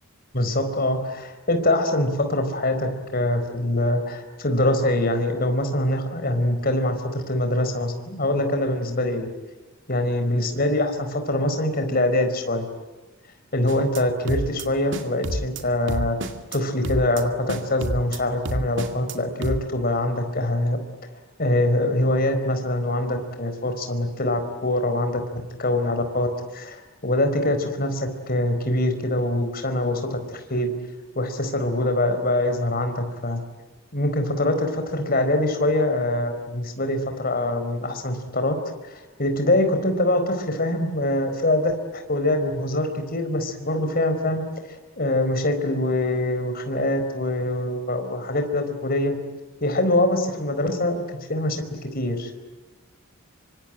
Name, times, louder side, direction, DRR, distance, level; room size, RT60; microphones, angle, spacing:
voice 1, 0.3-9.3 9.9-12.7 13.5-16.2 16.5-20.8 21.4-30.7 31.1-33.4 33.9-38.6 38.9-44.4 45.0-49.2 49.6-52.4, left 1 dB, 40° left, 6 dB, 4.5 m, -24 dB
sound 1, 13.7-14.0 14.3-14.6 14.9-15.6 15.9-16.6 16.8-17.2 17.5-18.2 18.4-19.1 19.4-19.6, right 1 dB, 55° right, 2.3 m, -29 dB
26.0 x 25.0 x 9.0 m, 1.2 s
head